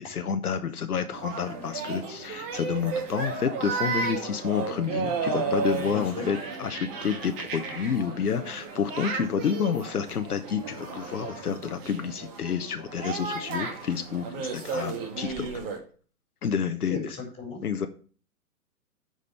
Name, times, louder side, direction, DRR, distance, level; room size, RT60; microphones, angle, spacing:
voice 1, 0.0-15.5 16.4-17.0 17.6-17.9, left 7 dB, 80° left, 8 dB, 0.9 m, -29 dB
sound 1, 1.1-15.8, right 5 dB, 40° right, 2.2 m, -33 dB
voice 2, 5.9-6.3 16.9-17.6, left 3 dB, 10° left, 0 dB, 3.8 m, -35 dB
8.3 x 5.1 x 5.6 m, 0.41 s
figure-of-eight pair, 125°, 45 cm